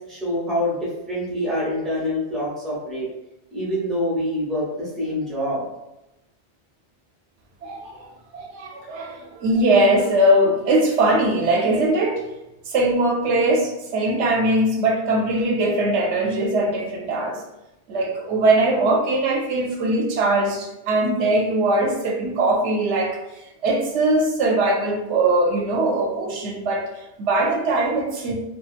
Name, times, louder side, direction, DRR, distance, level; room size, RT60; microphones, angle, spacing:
voice 1, 0.1-3.1 3.5-5.6, left 1 dB, ahead, -7 dB, 0.9 m, -26 dB
voice 2, 7.6-8.1 8.3-12.2 12.7-17.4 17.9-23.2 23.6-28.3, right 1 dB, 85° right, 1 dB, 0.9 m, -21 dB
2.8 x 2.3 x 2.3 m, 0.94 s
omnidirectional pair, 1.2 m